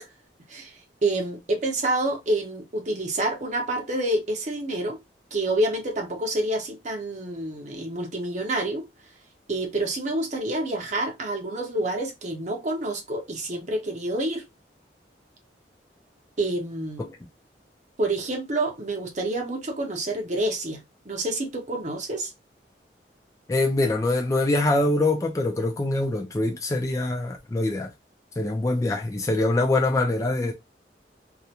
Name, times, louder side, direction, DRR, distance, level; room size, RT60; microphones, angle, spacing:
voice 1, 1.0-5.0 5.3-8.9 9.5-14.5 16.4-17.1 18.0-22.3, right 1 dB, 40° right, 0.7 m, -28 dB
voice 2, 23.5-27.9 28.4-30.5, left 2 dB, 20° left, 0.3 m, -24 dB
2.4 x 2.1 x 2.8 m
head